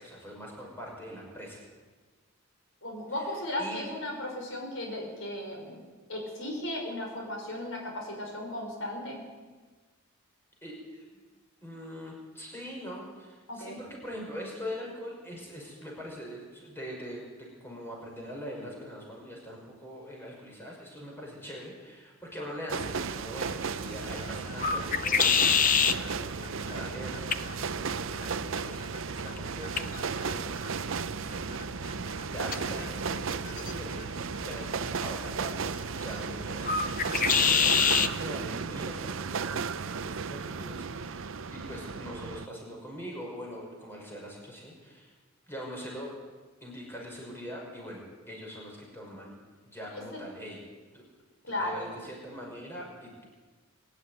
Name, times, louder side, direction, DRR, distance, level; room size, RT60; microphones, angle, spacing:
voice 1, 0.0-1.6 3.2-3.3 3.6-3.8 10.6-11.0 11.6-45.1 45.5-46.2 46.6-49.3 49.6-50.6 50.9-51.0 51.6-53.3, equal, 10° left, -2 dB, 5.6 m, -43 dB
voice 2, 2.8-5.8 6.1-9.2 13.5-13.8 36.0-36.2 49.9-50.2 51.4-51.8, left 1 dB, 65° left, 0 dB, 5.7 m, -36 dB
sound 1, 22.7-42.5, right 5 dB, 65° right, 0.6 m, -35 dB
sound 2, 22.8-38.2, left 7 dB, 40° left, 0.7 m, -31 dB
24.0 x 11.5 x 9.5 m, 1.4 s
head